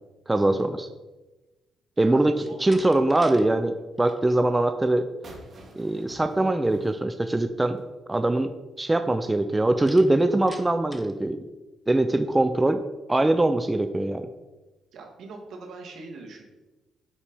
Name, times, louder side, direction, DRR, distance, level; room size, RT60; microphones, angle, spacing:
voice 1, 0.3-0.9 2.0-5.1 5.8-7.8 8.1-11.4 11.9-12.8 13.1-14.3, right 2 dB, 15° right, 8 dB, 0.5 m, -22 dB
voice 2, 2.0-2.8 14.9-16.4, right 3 dB, 70° right, 1 dB, 2.0 m, -42 dB
Slam, 2.4-3.5 3.8-4.2 9.9-11.2, equal, 5° left, 1.0 m, -46 dB
sound 1, 5.2-7.9, right 1 dB, 50° right, 2.0 m, -49 dB
9.0 x 4.3 x 5.4 m, 1.1 s
cardioid pair, 90°, 0 cm